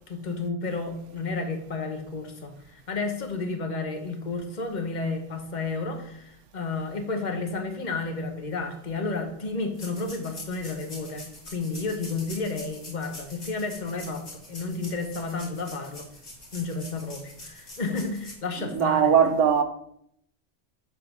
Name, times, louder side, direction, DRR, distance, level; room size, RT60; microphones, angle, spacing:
voice 1, 0.1-16.1 16.5-19.3, left 3 dB, 40° left, 1.0 m, -32 dB
sound 1, 9.8-18.3, left 2 dB, 55° left, 2.5 m, -44 dB
voice 2, 18.7-19.6, right 7 dB, 70° right, 1.0 m, -20 dB
7.4 x 3.8 x 5.9 m
omnidirectional pair, 1.3 m